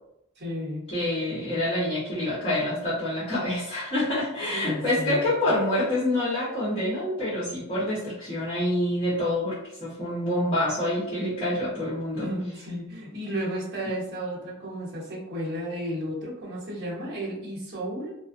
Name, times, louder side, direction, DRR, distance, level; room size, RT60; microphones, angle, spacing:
voice 1, 0.4-0.9 4.5-5.2 12.1-18.2, equal, 55° right, -8 dB, 0.9 m, -33 dB
voice 2, 0.9-12.3, left 1 dB, 30° left, -10 dB, 0.9 m, -27 dB
2.4 x 2.2 x 2.5 m, 0.78 s
head